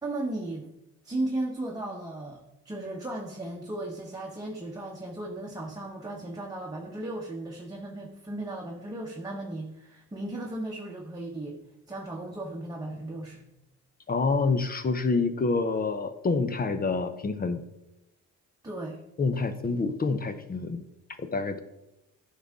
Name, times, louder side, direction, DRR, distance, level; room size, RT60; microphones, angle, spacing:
voice 1, 0.0-0.7 1.0-11.6 11.9-13.5 18.6-19.0, right 2 dB, 10° right, -2 dB, 1.1 m, -36 dB
voice 2, 14.1-17.6 19.2-20.8 21.2-21.6, left 4 dB, 30° left, 10 dB, 0.7 m, -27 dB
9.9 x 5.6 x 3.7 m, 0.91 s
cardioid pair, 90°, 30 cm